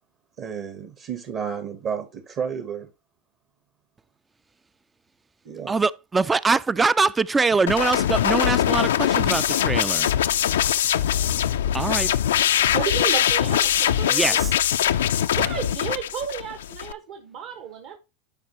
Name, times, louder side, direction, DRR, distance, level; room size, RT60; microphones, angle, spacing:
voice 1, 0.4-2.9 5.4-5.7 10.9-11.1, right 7 dB, 45° right, 1.1 m, -32 dB
voice 2, 5.7-10.1 11.7-12.1 14.1-14.5, right 4 dB, 15° right, 0.3 m, -23 dB
sound 1, 7.7-16.9, left 10 dB, 85° left, 0.4 m, -22 dB
voice 3, 12.7-14.4 15.3-18.0, right 8 dB, 60° right, 1.4 m, -32 dB
12.0 x 4.7 x 2.9 m
hypercardioid pair, 105°, 0 cm